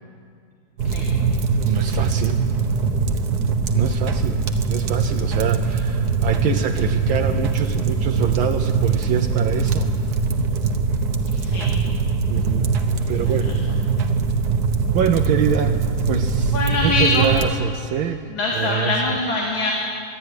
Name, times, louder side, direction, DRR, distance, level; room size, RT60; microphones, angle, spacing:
sound 1, 0.8-17.5, right 4 dB, 55° right, 1.5 m, -22 dB
voice 1, 1.6-2.5 3.7-4.4 4.7-9.9 12.3-12.7 13.1-13.6 14.9-19.2, right 8 dB, 75° right, 5 dB, 1.5 m, -25 dB
voice 2, 11.4-11.7 13.2-13.3 16.5-17.3 18.3-19.7, left 2 dB, 70° left, -2 dB, 3.0 m, -23 dB
26.0 x 11.5 x 9.8 m, 2.3 s
omnidirectional pair, 2.3 m